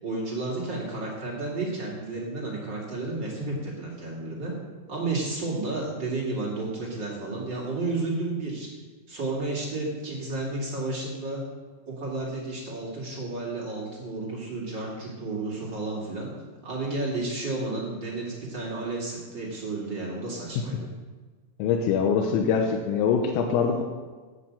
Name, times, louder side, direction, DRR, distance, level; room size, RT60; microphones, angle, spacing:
voice 1, 0.0-4.5 4.9-8.7 9.1-11.4 11.8-16.3 16.6-20.9, right 2 dB, 45° right, -3 dB, 1.4 m, -32 dB
voice 2, 21.6-23.8, left 6 dB, 90° left, 2 dB, 3.6 m, -23 dB
13.5 x 6.3 x 8.1 m, 1.4 s
omnidirectional pair, 5.9 m